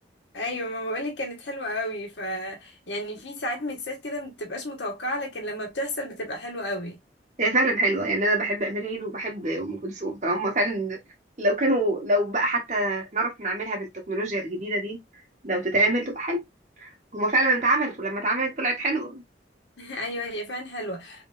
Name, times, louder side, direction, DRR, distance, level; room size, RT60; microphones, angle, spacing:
voice 1, 0.3-7.0 19.8-21.3, left 1 dB, 85° left, 1.2 m, -32 dB
voice 2, 7.4-11.0 11.4-15.0 15.4-16.4 16.8-19.2, right 2 dB, 40° right, 1.4 m, -25 dB
3.7 x 3.4 x 2.5 m
head